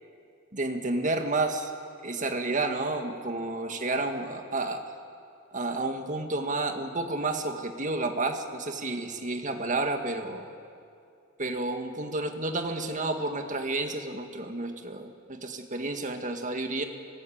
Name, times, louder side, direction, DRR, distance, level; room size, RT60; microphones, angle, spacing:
voice 1, 0.5-1.7 2.0-4.8 5.5-10.5 11.4-16.8, right 2 dB, 35° right, 5 dB, 1.9 m, -30 dB
24.0 x 19.0 x 8.8 m, 2.5 s
head